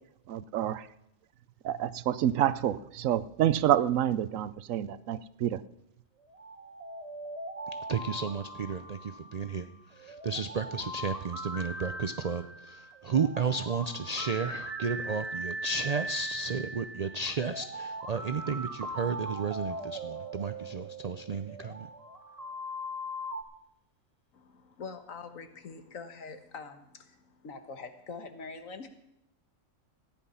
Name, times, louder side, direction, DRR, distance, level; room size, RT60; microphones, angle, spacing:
voice 1, 0.3-0.9 1.6-5.6, right 11 dB, 75° right, 16 dB, 1.0 m, -28 dB
sound 1, 6.3-23.4, right 1 dB, 30° right, 1.4 m, -40 dB
voice 2, 7.9-21.9, right 5 dB, 55° right, 10 dB, 0.4 m, -33 dB
voice 3, 24.3-28.9, left 4 dB, 75° left, 8 dB, 1.7 m, -44 dB
14.5 x 10.5 x 5.7 m, 0.81 s
omnidirectional pair, 1.4 m